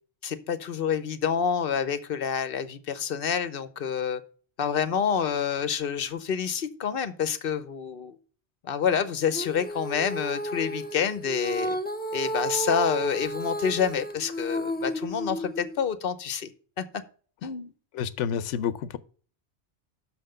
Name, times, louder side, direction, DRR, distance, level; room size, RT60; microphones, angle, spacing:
voice 1, 0.2-4.2 4.6-8.2 8.6-11.8 12.1-16.5 16.8-16.9 17.4-17.7, left 7 dB, 55° left, 0.9 m, -28 dB
Female singing, 9.3-15.8, equal, 15° left, 0.4 m, -32 dB
voice 2, 17.9-19.0, left 8 dB, 80° left, 0.9 m, -29 dB
6.2 x 5.7 x 6.6 m
omnidirectional pair, 1.2 m